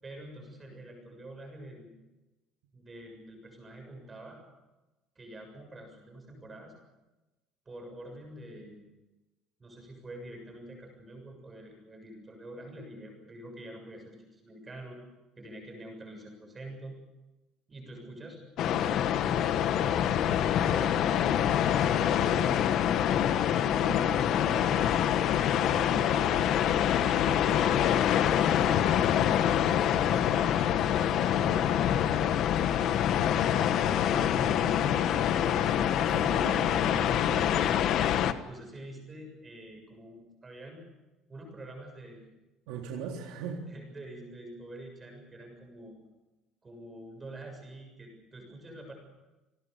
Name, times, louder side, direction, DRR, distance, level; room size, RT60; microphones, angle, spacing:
voice 1, 0.0-1.9 2.7-4.4 5.2-6.7 7.7-8.8 9.6-15.0 15.4-17.0 17.7-18.4 18.6-22.8 23.4-24.8 25.6-27.6 28.4-29.9 30.3-32.1 33.6-35.3 35.7-36.6 36.8-37.7 38.4-40.8 41.3-42.2 43.7-45.9 46.6-48.9, right 1 dB, 15° right, 2 dB, 7.0 m, -46 dB
sound 1, 18.6-38.3, left 10 dB, 45° left, 1.3 m, -26 dB
voice 2, 22.2-22.6 23.8-24.7 36.1-37.8 42.7-43.6, right 6 dB, 80° right, 0 dB, 3.6 m, -41 dB
29.5 x 19.0 x 6.9 m, 1.1 s
cardioid pair, 180°, 0 cm